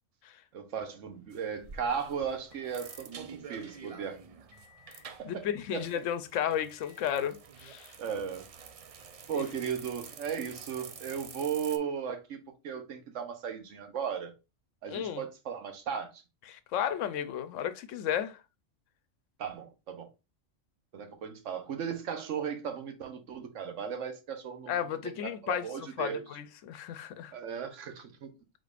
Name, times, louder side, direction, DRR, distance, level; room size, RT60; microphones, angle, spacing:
voice 1, 0.5-4.2 5.2-5.5 5.7-6.0 8.0-8.5 9.3-14.3 14.8-16.2 19.4-20.1 20.9-26.2 27.3-28.3, right 7 dB, 85° right, 1.2 m, -36 dB
sound 1, 1.0-3.1 3.5-4.1 4.5-5.1 5.5-6.1 6.5-7.1, left 9 dB, 55° left, 1.1 m, -60 dB
sound 2, 1.3-11.8, right 6 dB, 70° right, 0.3 m, -49 dB
voice 2, 4.9-7.9 9.3-9.4 14.9-15.3 16.5-18.4 24.7-27.3, left 9 dB, 90° left, 1.0 m, -34 dB
5.0 x 3.9 x 2.4 m
omnidirectional pair, 1.2 m